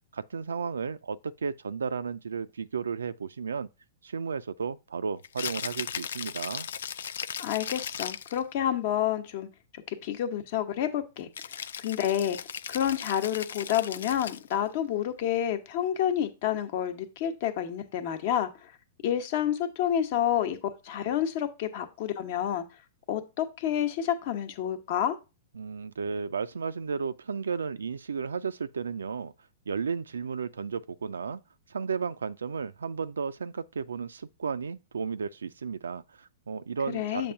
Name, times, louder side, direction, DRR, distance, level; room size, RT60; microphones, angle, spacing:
voice 1, 0.1-3.7 4.0-6.7 25.5-29.3 29.7-31.4 31.7-37.3, right 5 dB, 90° right, 0.3 m, -33 dB
Rattle (instrument), 5.2-8.4 11.3-14.6, left 8 dB, 75° left, 0.4 m, -37 dB
voice 2, 7.4-9.5 9.9-11.3 11.8-12.4 12.7-18.7 19.0-20.6 20.8-22.6 23.1-25.2 36.9-37.3, left 10 dB, 55° left, 1.0 m, -29 dB
7.1 x 2.6 x 5.7 m
hypercardioid pair, 125°, 0 cm